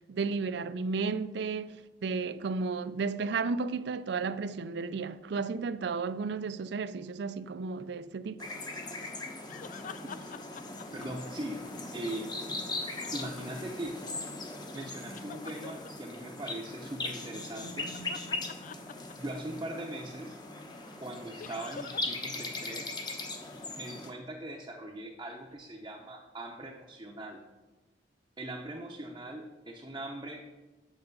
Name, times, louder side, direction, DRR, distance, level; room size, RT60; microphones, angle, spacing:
voice 1, 0.1-8.5, right 4 dB, 65° right, 0.4 m, -33 dB
sound 1, 8.4-24.1, left 2 dB, 25° left, 1.1 m, -39 dB
sound 2, 9.5-11.8 12.6-13.9 15.1-15.9 17.6-19.6 21.4-22.2 22.5-22.6 25.5-25.6, left 6 dB, 45° left, 0.4 m, -47 dB
voice 2, 10.9-11.6 11.9-12.3 13.1-14.0 14.7-18.0 19.2-20.4 21.0-23.0 23.7-27.4 28.4-30.4, right 1 dB, 25° right, 0.7 m, -40 dB
8.0 x 6.6 x 5.3 m
head